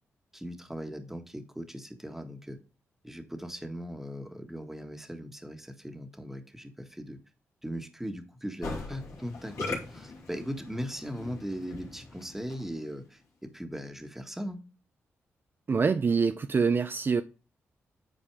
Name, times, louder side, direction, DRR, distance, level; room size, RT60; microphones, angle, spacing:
voice 1, 0.3-2.6 3.0-7.2 7.6-14.6, equal, 5° right, 1.6 m, -39 dB
Musical instrument, 8.6-12.9, left 3 dB, 75° left, 2.7 m, -40 dB
voice 2, 15.7-17.2, right 5 dB, 45° right, 0.6 m, -25 dB
9.0 x 4.2 x 4.8 m
cardioid pair, 60°, 5 cm